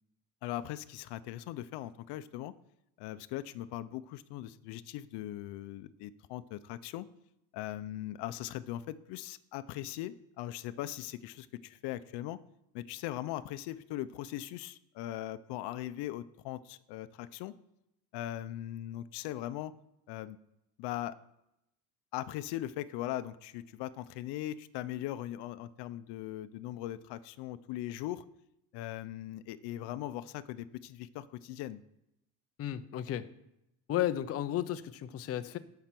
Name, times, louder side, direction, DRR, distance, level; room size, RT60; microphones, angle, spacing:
voice 1, 0.4-2.5 3.0-7.1 7.5-12.4 12.7-17.5 18.1-19.7 20.1-20.4 20.8-21.2 22.1-28.2 28.7-31.8, left 13 dB, 80° left, 15 dB, 0.7 m, -40 dB
voice 2, 32.6-33.3 33.9-35.6, left 12 dB, 35° left, 11 dB, 0.6 m, -33 dB
14.0 x 5.8 x 6.0 m, 0.84 s
cardioid pair, 160°, 40 cm